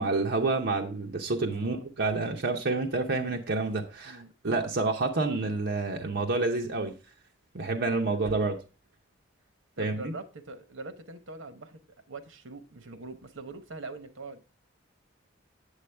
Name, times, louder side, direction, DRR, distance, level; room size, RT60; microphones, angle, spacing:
voice 1, 0.0-6.9 7.5-8.6 9.8-10.1, right 3 dB, 60° right, 2 dB, 0.8 m, -28 dB
voice 2, 1.6-1.9 4.1-4.3 8.2-8.3 9.8-11.8 12.1-14.4, right 3 dB, 80° right, 9 dB, 1.0 m, -43 dB
8.2 x 7.8 x 3.3 m, 0.33 s
head